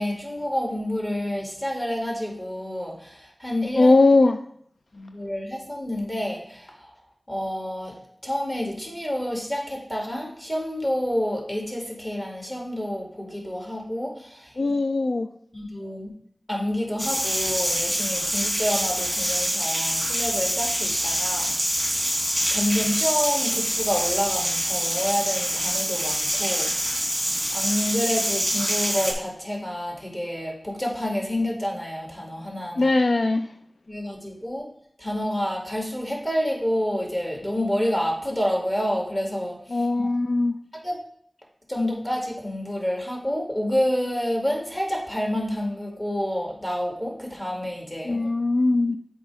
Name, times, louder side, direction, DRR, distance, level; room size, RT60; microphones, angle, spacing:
voice 1, 0.0-3.9 4.9-6.9 7.3-8.0 8.2-14.5 15.5-16.1 16.5-27.1 27.5-32.9 33.9-34.7 35.0-39.9 40.8-41.0 41.7-48.3, equal, 20° left, -1 dB, 2.0 m, -28 dB
voice 2, 3.8-4.4 14.6-15.3 32.8-33.5 39.7-40.6 48.0-49.0, left 2 dB, 80° left, 7 dB, 0.3 m, -20 dB
sound 1, 17.0-29.1, equal, 5° right, 1.6 m, -25 dB
8.1 x 3.0 x 4.8 m, 0.64 s
wide cardioid pair, 60°, 0 cm